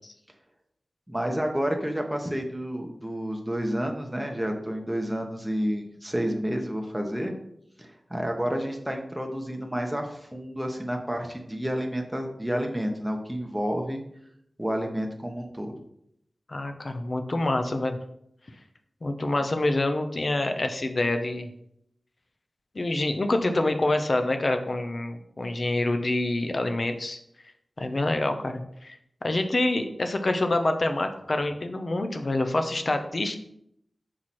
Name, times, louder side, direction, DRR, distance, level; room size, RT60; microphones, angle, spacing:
voice 1, 1.1-7.3 7.8-14.0 14.6-15.8, equal, 5° right, 2 dB, 1.0 m, -30 dB
voice 2, 16.5-18.0 19.0-21.5 22.7-27.2 27.8-29.0 29.2-33.4, left 2 dB, 50° left, 7 dB, 0.7 m, -26 dB
5.7 x 4.7 x 4.3 m, 0.73 s
wide cardioid pair, 85°, 0 cm